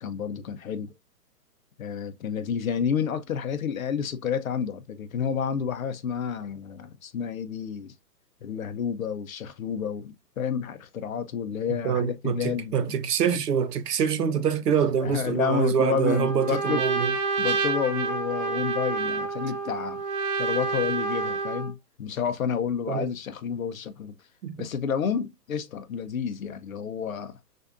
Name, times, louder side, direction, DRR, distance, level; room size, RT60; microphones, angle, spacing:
voice 1, 0.0-0.9 1.8-7.9 8.4-13.0 15.0-16.8 17.4-20.0 20.4-24.1 24.5-27.4, left 7 dB, 55° left, 0.8 m, -30 dB
voice 2, 11.8-17.1 22.9-23.1 24.4-24.7, right 7 dB, 70° right, 0.9 m, -25 dB
Trumpet, 16.0-21.7, right 4 dB, 45° right, 1.0 m, -28 dB
6.3 x 2.5 x 2.5 m
hypercardioid pair, 170°, 48 cm